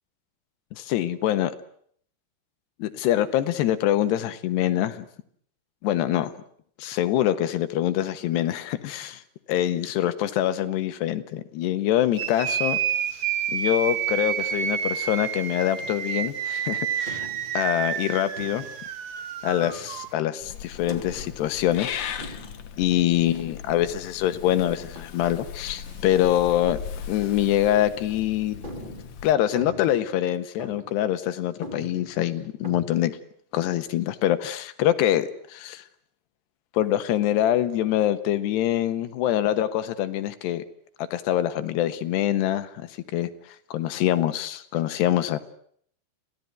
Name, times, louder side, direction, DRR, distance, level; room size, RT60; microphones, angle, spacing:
voice 1, 0.7-1.5 2.8-5.1 5.8-6.3 6.8-9.2 9.5-12.8 13.5-17.3 17.5-18.7 19.4-21.9 22.2-22.4 22.8-26.8 27.1-28.9 29.2-33.1 33.5-35.8 36.7-40.6 41.0-43.3 43.7-45.4, left 12 dB, 85° left, 11 dB, 3.4 m, -25 dB
sound 1, 12.1-20.1, right 9 dB, 75° right, 1.2 m, -29 dB
sound 2, 15.8-16.3 17.1-17.7 18.4-18.9 19.6-20.2 20.9-21.5 22.2-22.8 23.3-23.7 24.5-25.3 25.7-26.3 26.6-26.7 27.4-27.5 28.0-28.1 28.6-30.2 30.6-31.0 31.3-31.4 31.6-32.9, right 1 dB, 15° right, 2.6 m, -43 dB
Purr / Meow, 20.4-29.4, left 8 dB, 60° left, 2.2 m, -38 dB
27.0 x 17.0 x 9.5 m, 0.64 s
omnidirectional pair, 4.7 m